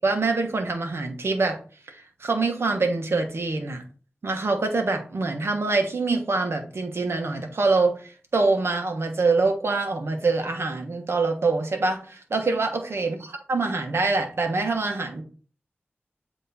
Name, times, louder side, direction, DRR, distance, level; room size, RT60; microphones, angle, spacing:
voice 1, 0.0-1.6 1.9-3.8 4.2-13.2 13.5-15.2, right 3 dB, 80° right, 4 dB, 1.2 m, -25 dB
8.1 x 3.0 x 4.0 m, 0.38 s
wide cardioid pair, 60°, 4 cm